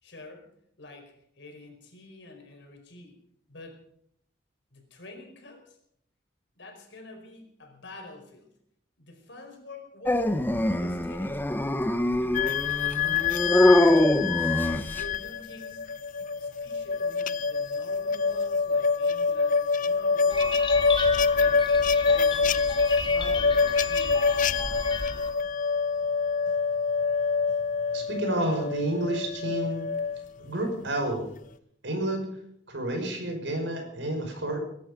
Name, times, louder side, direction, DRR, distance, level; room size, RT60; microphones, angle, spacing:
voice 1, 0.0-0.5 0.8-3.2 3.5-3.8 4.7-5.8 6.5-8.5 9.0-11.4 12.1-13.6 14.5-15.9 16.4-20.5 21.3-21.6 22.0-24.9, left 2 dB, 70° left, 3 dB, 4.8 m, -47 dB
Dog, 10.1-15.2, left 1 dB, 10° left, 0.9 m, -23 dB
sound 1, 12.3-30.3, left 5 dB, 45° left, 0.5 m, -26 dB
sound 2, 20.3-25.3, left 3 dB, 30° left, 2.1 m, -34 dB
voice 2, 27.9-29.9 30.4-31.2 31.8-32.3 32.7-34.6, right 1 dB, 75° right, 3 dB, 5.7 m, -30 dB
23.0 x 12.0 x 5.2 m, 0.70 s
head